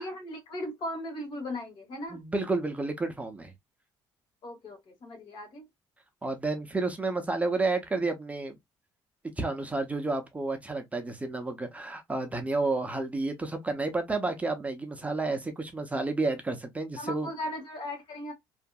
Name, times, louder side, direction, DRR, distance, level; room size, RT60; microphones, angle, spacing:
voice 1, 0.0-2.2 4.4-5.7 17.0-18.3, left 1 dB, 60° left, 1.2 m, -37 dB
voice 2, 2.1-3.5 6.2-8.6 9.4-17.3, right 3 dB, 15° right, 0.5 m, -31 dB
2.7 x 2.4 x 2.2 m
cardioid pair, 105°, 9 cm